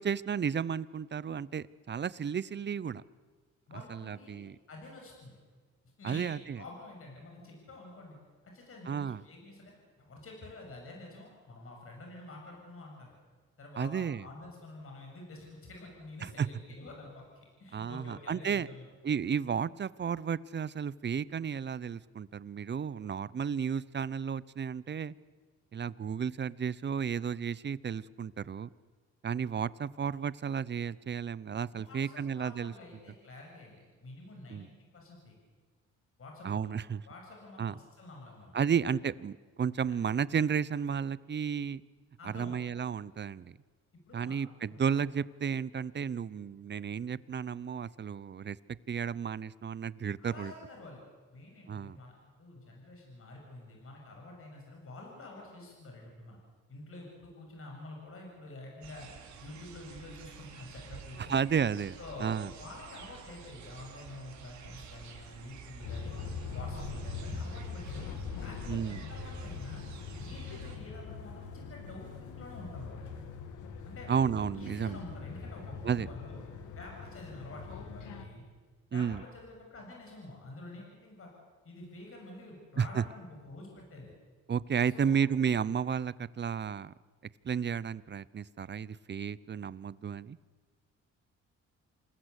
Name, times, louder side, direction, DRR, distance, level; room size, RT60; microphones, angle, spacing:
voice 1, 0.0-3.0 3.9-4.6 6.0-6.6 8.9-9.2 13.8-14.2 16.2-16.5 17.7-18.7 19.0-25.1 25.7-28.7 29.2-32.7 34.5-34.7 36.4-37.0 37.6-37.8 38.5-41.8 42.2-43.6 44.1-48.6 48.9-50.5 51.7-52.0 61.3-62.5 68.7-69.0 74.1-75.0 75.8-76.1 78.9-79.2 82.8-83.0 84.5-86.9 87.4-90.4, right 7 dB, 35° right, 19 dB, 0.8 m, -33 dB
voice 2, 3.7-4.4 4.7-5.4 6.0-8.2 8.4-9.7 10.0-13.1 13.6-17.2 17.6-18.9 31.7-35.3 36.2-36.8 37.1-38.5 42.2-42.8 44.1-44.4 44.6-44.8 50.2-51.0 51.3-56.4 56.7-59.1 59.4-61.4 62.0-66.2 66.5-68.1 68.4-69.8 70.2-73.1 73.8-74.1 74.5-76.4 76.8-78.4 78.9-81.3 81.6-84.1 84.9-85.2, left 2 dB, 45° left, 0 dB, 7.4 m, -48 dB
sound 1, 58.8-70.8, right 7 dB, 65° right, 3.8 m, -49 dB
sound 2, 65.8-78.2, left 5 dB, 80° left, 2.7 m, -42 dB
28.0 x 20.0 x 8.3 m, 1.4 s
cardioid pair, 90°, 30 cm